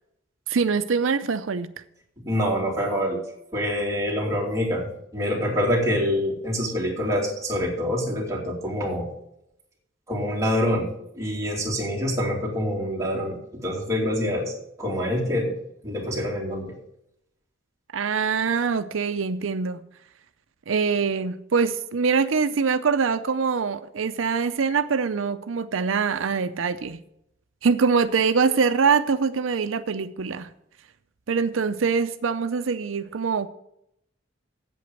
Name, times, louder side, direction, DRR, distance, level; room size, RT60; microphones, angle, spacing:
voice 1, 0.5-1.7 17.9-19.8 20.7-27.0 27.6-30.5 31.3-33.5, right 5 dB, 90° right, 11 dB, 0.6 m, -24 dB
voice 2, 2.2-3.2 3.5-9.1 10.1-15.6 15.8-16.8, equal, 15° right, -3 dB, 2.8 m, -26 dB
8.3 x 7.9 x 8.0 m, 0.79 s
head